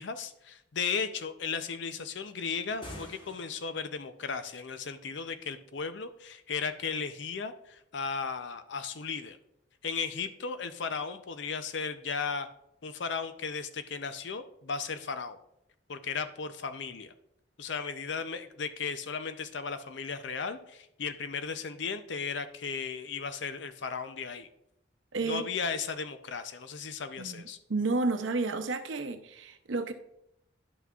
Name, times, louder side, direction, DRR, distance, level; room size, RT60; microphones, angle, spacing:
voice 1, 0.0-9.4 9.8-12.5 12.8-15.4 15.9-17.1 17.6-24.5 25.2-27.6, left 5 dB, 75° left, 10 dB, 0.6 m, -35 dB
sound 1, 2.7-4.0, equal, 25° left, 0.9 m, -47 dB
voice 2, 25.1-25.4 27.2-27.4 27.7-29.9, right 3 dB, 90° right, 8 dB, 0.7 m, -31 dB
11.0 x 5.8 x 2.4 m, 0.79 s
head